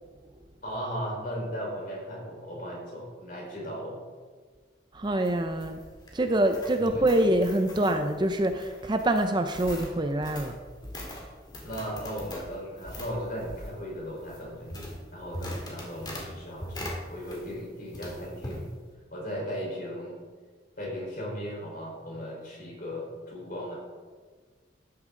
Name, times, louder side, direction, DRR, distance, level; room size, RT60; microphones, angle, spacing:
voice 1, 0.6-4.0 6.8-7.0 11.6-14.8 15.1-18.6 19.1-20.2 20.8-23.8, equal, 45° left, -2 dB, 4.1 m, -37 dB
voice 2, 4.9-5.8 6.1-10.6, right 1 dB, 25° right, 6 dB, 0.5 m, -25 dB
sound 1, 5.0-17.6 17.9-18.6, left 1 dB, 20° left, 2.1 m, -41 dB
13.5 x 10.0 x 3.8 m, 1.5 s
head